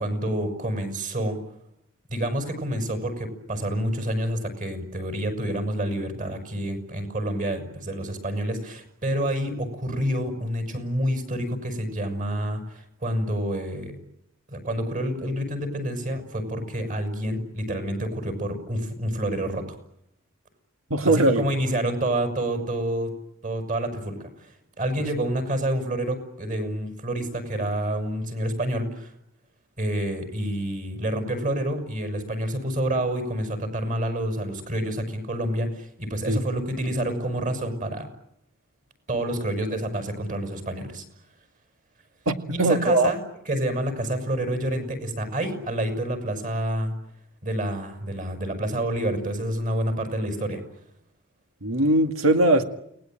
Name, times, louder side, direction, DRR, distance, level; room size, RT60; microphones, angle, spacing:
voice 1, 0.0-1.4 2.1-13.9 14.5-19.6 21.0-23.1 23.4-29.1 29.8-38.1 39.1-41.0 42.5-43.2 43.5-46.9 47.4-50.6, right 1 dB, 40° right, 7 dB, 6.4 m, -28 dB
voice 2, 20.9-21.4 36.3-36.4 42.3-43.1 51.6-52.6, right 2 dB, 80° right, 5 dB, 2.0 m, -20 dB
29.5 x 20.0 x 9.2 m, 0.78 s
head